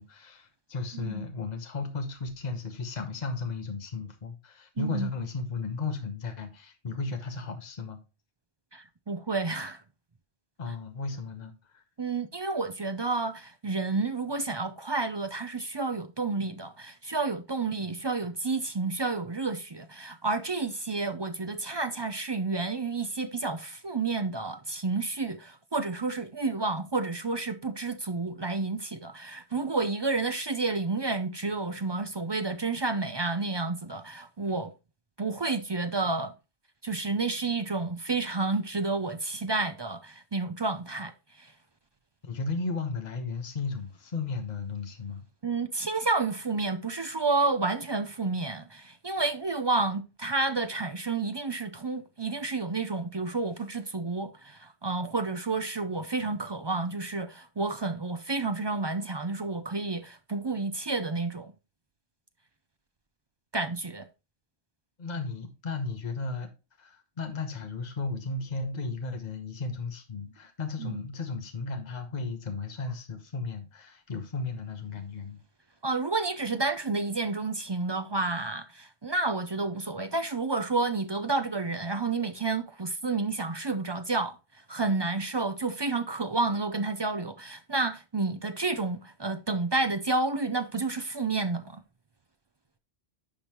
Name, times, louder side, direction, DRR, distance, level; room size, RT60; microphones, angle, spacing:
voice 1, 0.0-8.0 10.6-11.8 42.2-45.2 65.0-66.5 66.8-75.4, left 4 dB, 40° left, 1.2 m, -35 dB
voice 2, 0.9-1.3 4.8-5.1 8.7-9.8 12.0-34.7 35.2-36.3 36.8-41.1 41.4-41.5 45.4-61.5 63.5-64.1 70.8-71.0 75.8-84.4 84.7-91.8, right 3 dB, 35° right, 0.4 m, -30 dB
10.0 x 5.4 x 3.0 m
omnidirectional pair, 1.1 m